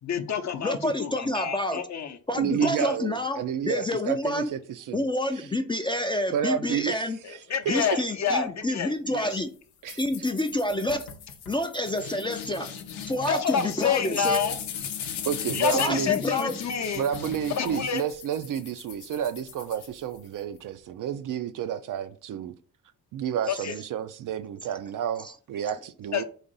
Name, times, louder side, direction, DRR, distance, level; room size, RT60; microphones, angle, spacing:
voice 1, 0.0-2.2 2.6-2.9 7.2-9.4 13.3-14.6 15.5-17.1 17.5-18.0 23.5-23.8 26.1-26.2, left 7 dB, 45° left, 0.7 m, -28 dB
voice 2, 0.6-1.8 2.3-4.5 4.9-7.2 7.7-9.5 10.0-11.1 11.5-12.7 13.1-14.4 15.7-16.5 23.5-23.7 25.2-25.3, left 1 dB, 15° left, 0.4 m, -28 dB
voice 3, 2.4-5.0 6.3-7.0 9.8-10.0 15.2-16.1 16.9-22.5 23.1-26.2, right 9 dB, 50° right, 0.4 m, -30 dB
sound 1, 9.9-20.4, left 7 dB, 85° left, 0.6 m, -38 dB
4.0 x 2.6 x 3.9 m
hypercardioid pair, 45°, 40 cm